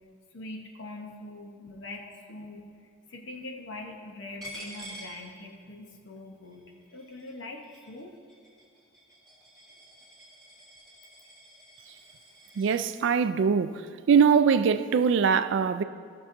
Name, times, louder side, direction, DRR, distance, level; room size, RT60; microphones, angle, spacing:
voice 1, 0.3-2.6 3.1-8.1, left 2 dB, 60° left, 0.7 m, -42 dB
Coin (dropping), 4.4-5.9 6.3-12.9, right 1 dB, 5° left, 2.1 m, -49 dB
voice 2, 12.6-13.8 14.1-15.8, right 6 dB, 60° right, 0.3 m, -22 dB
14.5 x 6.3 x 2.6 m
head